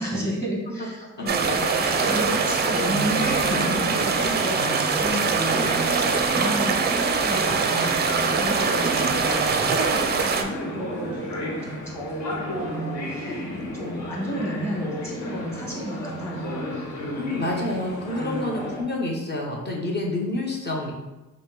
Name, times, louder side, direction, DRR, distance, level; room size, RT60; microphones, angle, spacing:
voice 1, 0.0-5.6 6.0-7.6 8.1-13.4 13.7-16.7 18.1-18.6, right 1 dB, 10° left, -3 dB, 1.3 m, -32 dB
sound 1, 1.2-18.8, equal, 70° left, 1.3 m, -32 dB
sound 2, 1.3-10.4, right 5 dB, 35° right, 0.4 m, -23 dB
voice 2, 17.2-20.9, left 2 dB, 35° left, -1 dB, 0.9 m, -28 dB
5.0 x 2.0 x 3.8 m, 1.1 s
cardioid pair, 90°, 30 cm